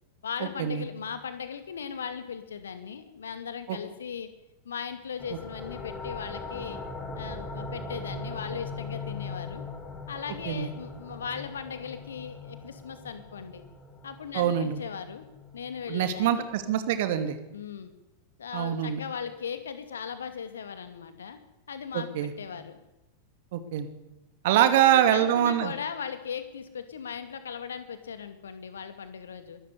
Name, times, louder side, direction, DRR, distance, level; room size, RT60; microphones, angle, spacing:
voice 1, 0.2-4.3 4.6-6.8 7.2-9.6 10.1-13.6 14.0-15.3 15.5-16.5 17.5-17.9 18.4-21.4 21.7-22.8 24.5-29.6, left 7 dB, 65° left, 10 dB, 2.5 m, -38 dB
sound 1, 5.2-16.6, left 3 dB, 15° left, 4.3 m, -40 dB
voice 2, 14.3-14.8 15.9-17.4 18.5-19.0 21.9-22.3 23.5-23.9 24.4-25.7, right 11 dB, 50° right, 9 dB, 2.6 m, -24 dB
23.0 x 13.5 x 9.7 m, 0.95 s
figure-of-eight pair, 90°, 0 cm